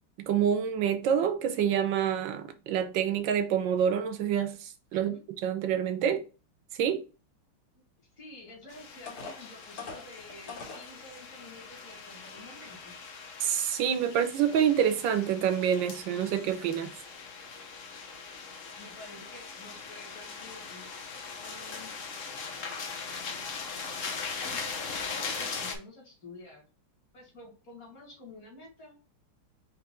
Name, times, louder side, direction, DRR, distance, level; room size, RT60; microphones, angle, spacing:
voice 1, 0.2-5.2 5.4-6.2 6.8-7.0 13.4-16.9, right 8 dB, 70° right, 1.3 m, -27 dB
voice 2, 4.9-5.2 7.7-7.8 8.2-12.9 18.8-20.9 21.4-22.1 24.4-26.6 27.1-29.0, left 2 dB, 40° left, 2.5 m, -50 dB
sound 1, 8.5-8.6 9.1-10.9 11.6-11.7 12.2-12.4, left 4 dB, 85° left, 2.4 m, -42 dB
sound 2, 8.7-25.8, left 5 dB, 60° left, 0.8 m, -40 dB
4.8 x 3.1 x 3.6 m
omnidirectional pair, 2.4 m